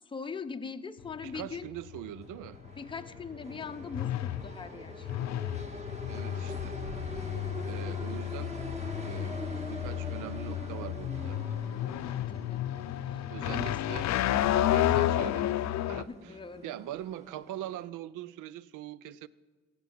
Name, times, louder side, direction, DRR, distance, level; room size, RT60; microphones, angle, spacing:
voice 1, 0.1-1.7 2.8-5.1 12.1-12.6 13.0-14.1 16.0-16.8, left 5 dB, 15° left, 7 dB, 0.7 m, -42 dB
sound 1, 1.0-16.0, left 12 dB, 65° left, 0.5 m, -32 dB
voice 2, 1.2-2.6 6.1-6.8 7.6-8.5 9.0-11.4 13.3-14.1 14.7-15.5 15.9-16.4 16.6-19.3, right 12 dB, 90° right, 19 dB, 0.5 m, -42 dB
sound 2, 1.9-17.9, right 1 dB, 20° right, 1.8 m, -45 dB
16.0 x 6.0 x 9.3 m, 1.3 s
cardioid pair, 90°, 30 cm